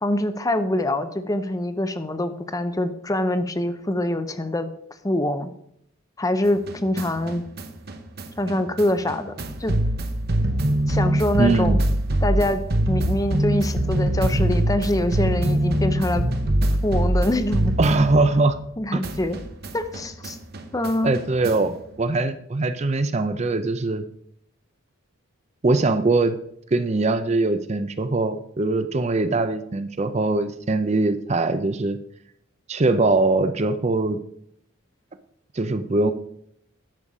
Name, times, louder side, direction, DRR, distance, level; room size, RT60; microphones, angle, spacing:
voice 1, 0.0-4.7 5.0-5.5 6.2-7.4 8.4-9.3 9.6-9.8 10.9-11.8 12.2-12.6 12.9-16.3 16.8-17.7 18.8-19.4 19.7-20.4 20.7-21.2, left 1 dB, 15° left, 10 dB, 0.6 m, -24 dB
sound 1, 6.5-18.7 19.0-21.8, right 1 dB, 50° right, 0.9 m, -24 dB
voice 2, 11.4-11.8 17.8-18.6 18.9-19.0 21.0-24.0 25.6-26.4 26.7-32.0 32.7-34.2 35.5-36.1, right 2 dB, 30° right, 11 dB, 0.5 m, -22 dB
11.0 x 7.0 x 4.9 m, 0.72 s
head